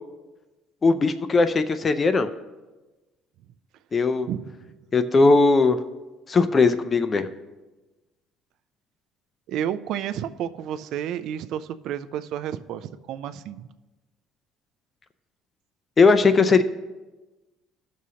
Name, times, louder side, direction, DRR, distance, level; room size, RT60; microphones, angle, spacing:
voice 1, 0.8-2.3 3.9-4.3 4.9-5.8 6.3-7.3 16.0-16.6, left 3 dB, 20° left, 11 dB, 0.3 m, -19 dB
voice 2, 4.3-4.7 9.5-13.7, right 10 dB, 55° right, 12 dB, 0.3 m, -31 dB
15.0 x 6.3 x 2.8 m, 1.2 s
cardioid pair, 175°, 0 cm